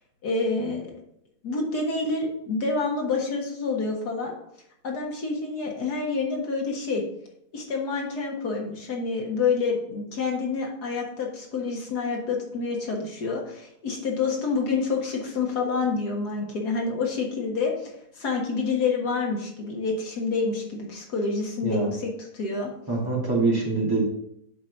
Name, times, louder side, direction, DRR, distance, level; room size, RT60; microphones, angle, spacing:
voice 1, 0.2-0.9 1.4-4.3 4.8-7.0 7.5-22.7, left 4 dB, 85° left, -1 dB, 2.2 m, -28 dB
voice 2, 22.9-24.0, right 3 dB, 15° right, -4 dB, 2.4 m, -24 dB
7.2 x 4.5 x 5.3 m, 0.74 s
omnidirectional pair, 1.6 m